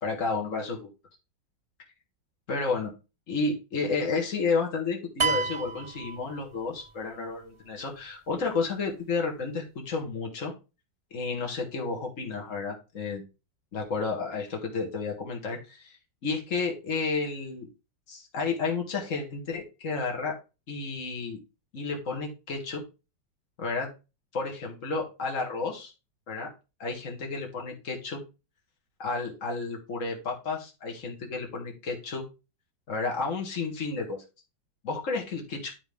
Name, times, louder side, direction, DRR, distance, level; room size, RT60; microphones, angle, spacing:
voice 1, 0.0-0.9 2.5-2.9 3.3-10.5 11.1-13.2 13.7-16.0 16.2-17.7 18.1-20.4 20.7-21.4 21.7-22.8 23.6-23.9 24.3-25.9 26.3-26.5 26.8-28.2 29.0-32.3 32.9-34.2 34.8-35.7, left 4 dB, 45° left, 0 dB, 2.3 m, -31 dB
sound 1, 5.2-6.9, right 4 dB, 50° right, 0.3 m, -30 dB
11.5 x 4.9 x 3.7 m, 0.29 s
omnidirectional pair, 1.9 m